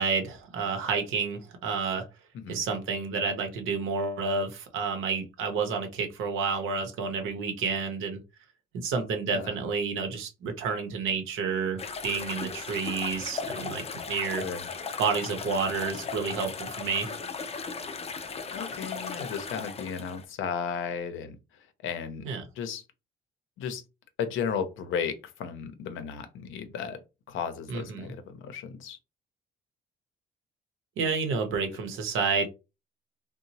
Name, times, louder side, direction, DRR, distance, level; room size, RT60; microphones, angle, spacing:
voice 1, 0.0-2.1 2.5-8.2 8.7-14.5 15.0-17.1 22.2-22.4 27.7-28.1 31.0-32.5, right 5 dB, 90° right, 5 dB, 0.7 m, -30 dB
sound 1, 11.8-20.3, left 5 dB, 30° left, 0.5 m, -37 dB
voice 2, 18.5-21.4 21.8-22.3 22.6-22.8 23.6-23.8 24.2-27.0 27.3-29.0, left 7 dB, 80° left, 10 dB, 0.6 m, -34 dB
2.9 x 2.0 x 2.7 m, 0.27 s
cardioid pair, 90°, 20 cm